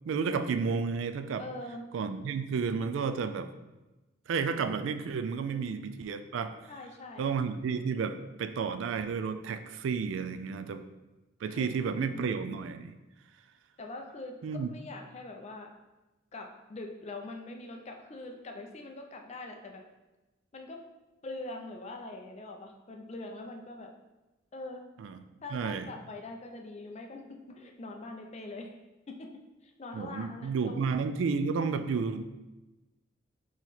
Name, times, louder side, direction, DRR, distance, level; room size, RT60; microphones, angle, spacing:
voice 1, 0.0-1.4 1.9-3.5 4.3-6.6 7.2-10.9 11.4-12.9 14.4-14.7 25.0-25.2 25.5-25.9 29.9-32.2, right 5 dB, 75° right, 9 dB, 0.3 m, -31 dB
voice 2, 1.4-1.8 5.5-5.8 6.7-7.3 10.6-10.8 11.5-11.7 12.0-12.4 13.8-15.7 16.3-19.8 20.5-20.8 21.2-23.9 24.5-24.8 25.4-28.7 29.1-29.3 29.6-30.9, left 2 dB, 35° left, 3 dB, 0.5 m, -43 dB
3.9 x 3.0 x 4.1 m, 1.1 s
head